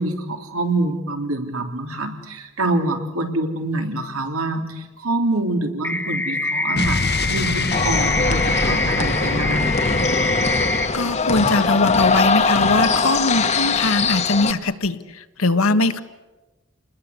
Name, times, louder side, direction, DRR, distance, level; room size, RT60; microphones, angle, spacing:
voice 1, 0.0-9.8, right 2 dB, 80° right, 4 dB, 3.5 m, -25 dB
sound 1, 5.8-10.9, left 2 dB, 5° left, 1.8 m, -25 dB
Explosion, 6.8-11.5, left 3 dB, 50° left, 1.2 m, -26 dB
sound 2, 7.7-14.5, left 4 dB, 30° left, 1.2 m, -21 dB
voice 2, 10.9-16.0, left 2 dB, 75° left, 10 dB, 1.5 m, -21 dB
29.5 x 20.5 x 8.3 m, 1.1 s
head